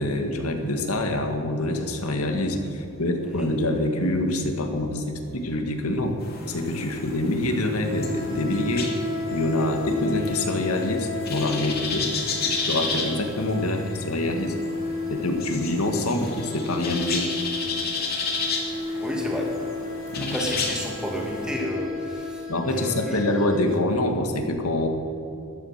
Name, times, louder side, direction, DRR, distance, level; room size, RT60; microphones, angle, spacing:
voice 1, 0.0-6.2 6.5-8.9 9.3-12.1 12.5-14.6 15.1-17.3 20.1-20.4 22.5-24.9, left 1 dB, 85° left, 4 dB, 1.8 m, -26 dB
sound 1, 6.2-21.5, left 4 dB, 45° left, 2.5 m, -33 dB
sound 2, 7.9-23.6, left 3 dB, 60° left, 2.3 m, -33 dB
voice 2, 19.0-19.5 20.2-23.3, equal, 5° right, -1 dB, 2.4 m, -32 dB
14.0 x 12.0 x 5.9 m, 2.9 s
head